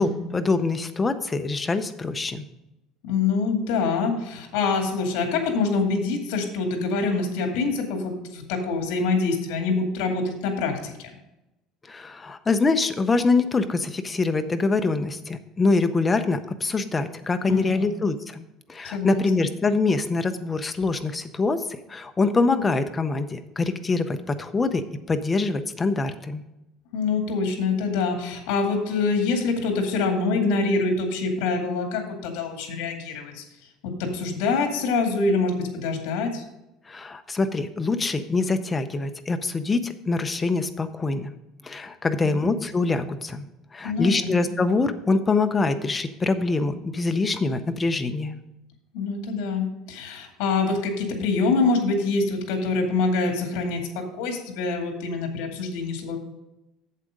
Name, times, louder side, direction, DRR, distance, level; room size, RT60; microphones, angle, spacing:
voice 1, 0.0-2.5 11.9-18.4 18.7-26.4 36.9-41.3 41.6-43.5 43.7-48.4, left 3 dB, 15° left, 8 dB, 0.6 m, -24 dB
voice 2, 3.0-11.1 17.5-17.9 18.8-19.3 26.9-33.4 33.8-36.4 42.2-42.6 43.8-44.4 48.9-56.2, left 4 dB, 75° left, 3 dB, 2.2 m, -25 dB
8.3 x 7.5 x 5.1 m, 0.94 s
cardioid pair, 170°, 0 cm